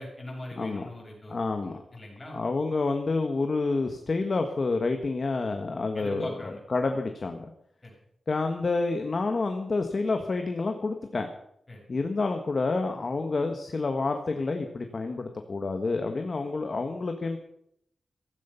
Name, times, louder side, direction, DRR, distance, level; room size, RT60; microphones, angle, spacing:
voice 1, 0.0-1.4 1.6-2.4 5.9-6.6 7.8-8.0 11.7-11.8, left 1 dB, 20° left, -2 dB, 7.3 m, -41 dB
voice 2, 0.6-0.9 1.3-1.8 2.3-7.5 8.3-11.3 11.9-17.4, left 3 dB, 35° left, 5 dB, 1.4 m, -28 dB
16.0 x 15.0 x 5.7 m, 0.73 s
wide cardioid pair, 170°, 0 cm